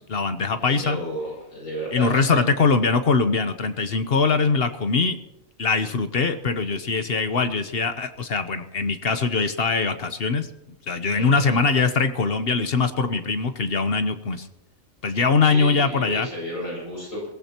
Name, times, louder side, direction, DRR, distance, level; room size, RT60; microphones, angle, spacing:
voice 1, 0.0-1.0 1.9-5.2 5.6-10.5 10.9-14.5 15.0-16.3, left 4 dB, 50° left, 9 dB, 1.1 m, -22 dB
voice 2, 0.6-2.5 11.1-11.6 15.4-17.3, equal, 90° left, -3 dB, 8.2 m, -32 dB
23.0 x 17.0 x 3.0 m, 0.83 s
omnidirectional pair, 1.4 m